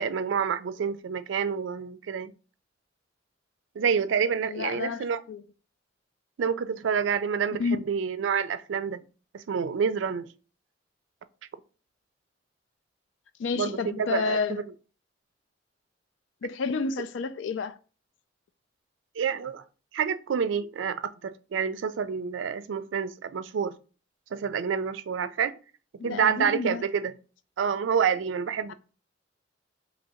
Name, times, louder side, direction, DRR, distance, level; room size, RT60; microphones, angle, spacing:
voice 1, 0.0-2.3 3.8-5.2 6.4-9.0 9.3-10.3 13.6-14.6 19.2-19.6 19.9-23.7 24.3-25.5 26.0-27.1 27.6-28.7, right 6 dB, 85° right, 0.4 m, -28 dB
voice 2, 4.5-5.4 7.6-7.8 13.4-14.6 16.4-17.8 26.0-26.8 28.7-28.8, left 5 dB, 85° left, 0.4 m, -30 dB
2.9 x 2.7 x 4.2 m
head